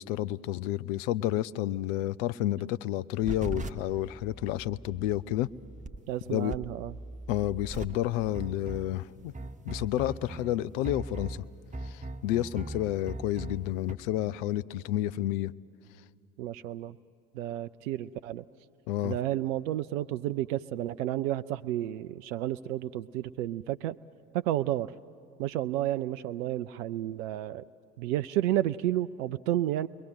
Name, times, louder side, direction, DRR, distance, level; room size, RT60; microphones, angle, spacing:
voice 1, 0.0-5.5 6.3-6.5 7.3-9.3 9.6-11.4 11.8-15.5 18.9-19.2, left 14 dB, 60° left, 17 dB, 0.6 m, -30 dB
sound 1, 3.2-13.9, right 2 dB, 15° right, 1.2 m, -40 dB
voice 2, 6.1-6.9 16.4-17.0 17.3-18.4 19.0-24.0 24.3-24.9 25.4-27.6 28.0-29.9, right 13 dB, 65° right, 12 dB, 0.5 m, -31 dB
29.5 x 22.0 x 8.0 m, 2.5 s
figure-of-eight pair, 65°, 44 cm